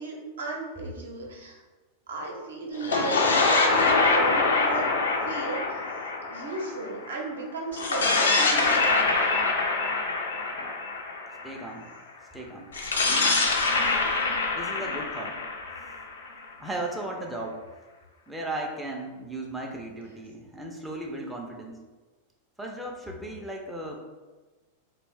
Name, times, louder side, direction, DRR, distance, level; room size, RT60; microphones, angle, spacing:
voice 1, 0.0-1.6 2.1-3.2 3.6-5.8 6.3-9.1, right 3 dB, 70° right, -1 dB, 0.6 m, -35 dB
sound 1, 2.7-7.2 7.7-11.7 12.7-16.5, left 3 dB, 70° left, 0.4 m, -25 dB
voice 2, 11.4-11.9 12.3-12.7 13.1-13.4 14.6-15.4 16.6-17.6 18.3-21.8 22.6-24.0, right 1 dB, 5° right, -1 dB, 0.4 m, -36 dB
2.5 x 2.0 x 3.4 m, 1.3 s
figure-of-eight pair, 90°, 0 cm